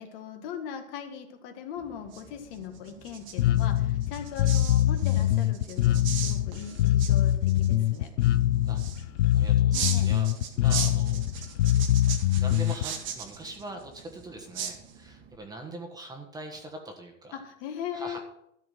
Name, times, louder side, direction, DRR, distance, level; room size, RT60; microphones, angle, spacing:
voice 1, 0.0-8.1 9.7-10.1 17.3-18.2, left 8 dB, 50° left, 5 dB, 1.8 m, -39 dB
sound 1, 1.8-15.4, right 7 dB, 30° right, 1.5 m, -39 dB
Bass guitar, 3.4-12.8, left 12 dB, 75° left, 0.7 m, -23 dB
voice 2, 9.3-10.3 10.5-11.2 11.8-11.9 12.4-17.4 17.9-18.2, right 2 dB, 10° right, 2 dB, 1.4 m, -42 dB
13.0 x 4.8 x 7.6 m, 0.75 s
hypercardioid pair, 140°, 38 cm